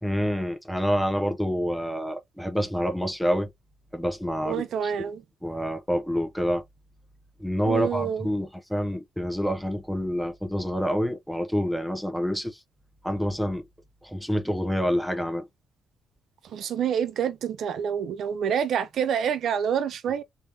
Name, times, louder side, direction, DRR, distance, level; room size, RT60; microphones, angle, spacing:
voice 1, 0.0-3.5 3.9-5.1 5.4-6.6 7.4-12.6 13.0-13.6 14.0-15.5, equal, ahead, 0.8 m, -27 dB
voice 2, 4.4-5.2 7.7-8.3 16.4-20.2, right 8 dB, 65° right, 0.5 m, -27 dB
3.4 x 2.8 x 3.4 m
cardioid pair, 90°, 0 cm